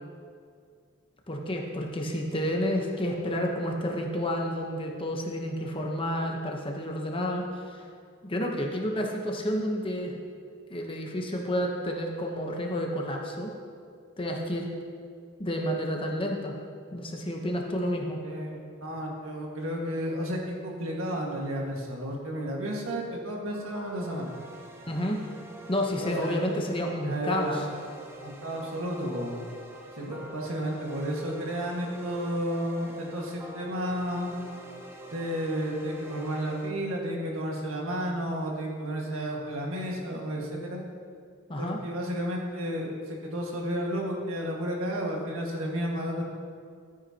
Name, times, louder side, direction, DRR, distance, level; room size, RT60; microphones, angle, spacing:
voice 1, 1.3-7.9 8.2-10.1 10.7-13.5 14.2-14.7 15.4-16.6 16.9-18.2 24.9-25.2 25.7-27.6 41.5-41.8, equal, 25° left, 1 dB, 0.9 m, -30 dB
voice 2, 18.2-24.3 26.0-26.4 27.0-27.6 28.2-29.4 29.9-34.4 35.1-40.8 41.6-46.2, equal, 75° right, -1 dB, 1.7 m, -32 dB
sound 1, 23.5-36.7, right 1 dB, 10° right, 0.7 m, -46 dB
13.0 x 9.5 x 2.9 m, 2.2 s
head